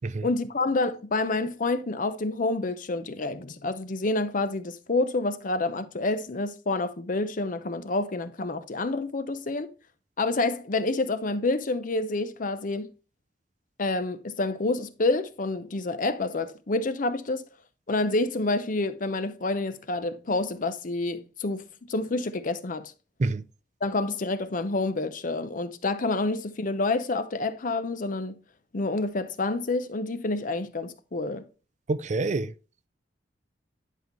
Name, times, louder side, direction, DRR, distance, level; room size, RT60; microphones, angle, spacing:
voice 1, 0.2-9.7 10.2-12.9 13.8-17.4 17.9-22.9 23.8-28.4 28.7-31.4, left 2 dB, 45° left, 0.7 m, -28 dB
voice 2, 31.9-32.5, right 3 dB, 40° right, 0.4 m, -27 dB
10.5 x 5.3 x 3.1 m
head